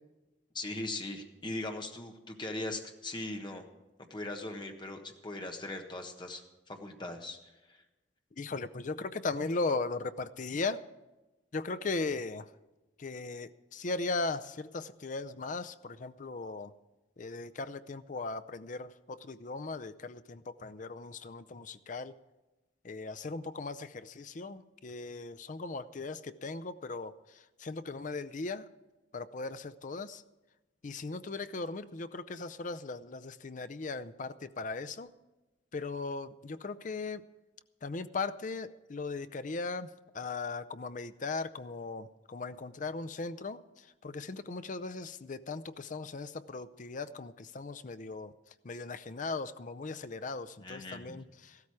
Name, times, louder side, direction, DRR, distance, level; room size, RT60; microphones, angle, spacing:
voice 1, 0.5-3.6 4.1-7.4 7.7-7.8 50.6-51.2, left 2 dB, 25° left, 4 dB, 1.4 m, -40 dB
voice 2, 8.4-10.8 11.5-12.5 13.0-16.7 17.2-22.1 22.8-27.1 27.6-28.6 29.1-30.2 30.8-35.1 35.7-37.2 37.8-39.9 40.1-43.6 44.0-48.3 48.6-51.2, left 3 dB, 45° left, 12 dB, 0.5 m, -38 dB
14.5 x 13.0 x 4.8 m, 1.1 s
head